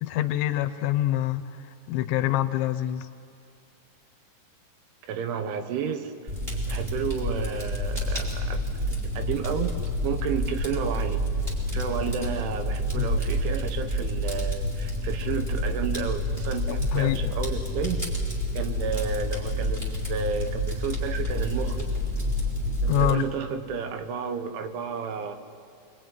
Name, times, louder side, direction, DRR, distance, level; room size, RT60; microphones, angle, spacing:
voice 1, 0.0-1.5 1.9-3.1 13.0-13.1 16.7-17.2 22.9-23.2, left 14 dB, 80° left, 11 dB, 3.0 m, -25 dB
voice 2, 5.0-6.3 6.6-11.2 11.7-18.1 18.6-21.9 22.8-25.4, right 6 dB, 85° right, 8 dB, 3.9 m, -32 dB
Fire, 6.3-23.1, equal, 15° right, 3.8 m, -28 dB
24.5 x 23.0 x 9.3 m, 2.6 s
omnidirectional pair, 5.3 m